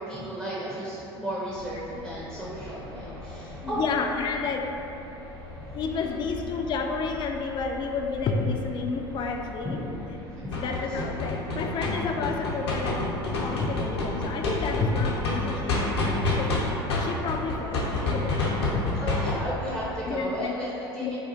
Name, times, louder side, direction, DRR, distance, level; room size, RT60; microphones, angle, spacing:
voice 1, 0.0-3.8 5.9-6.1 9.6-9.8 10.4-11.0 13.5-13.6 18.9-21.2, equal, 10° right, -7 dB, 0.6 m, -34 dB
sound 1, 1.5-20.2, left 1 dB, 60° right, 1.4 m, -43 dB
voice 2, 3.6-4.7 5.7-9.8 10.5-13.0 13.4-16.5 17.0-18.9 19.3-19.4 20.1-20.5 21.0-21.2, left 4 dB, 35° left, 3 dB, 0.3 m, -30 dB
sound 2, 10.5-16.6 16.9-19.3, left 3 dB, 75° left, 0.7 m, -27 dB
4.1 x 2.3 x 2.6 m, 3.0 s
hypercardioid pair, 75°, 14 cm